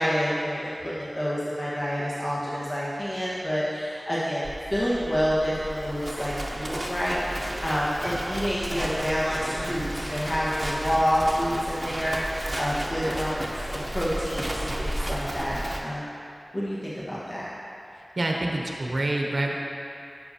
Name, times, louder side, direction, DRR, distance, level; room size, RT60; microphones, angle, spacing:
voice 1, 0.0-13.4 13.9-16.2 16.5-17.5, equal, 40° left, -9 dB, 1.5 m, -28 dB
Livestock farm animals working animals, 4.4-15.8, right 1 dB, 30° right, 0.9 m, -33 dB
voice 2, 17.9-19.5, right 2 dB, 70° right, 0 dB, 0.8 m, -27 dB
10.0 x 6.8 x 2.8 m, 2.6 s
wide cardioid pair, 45°, 0 cm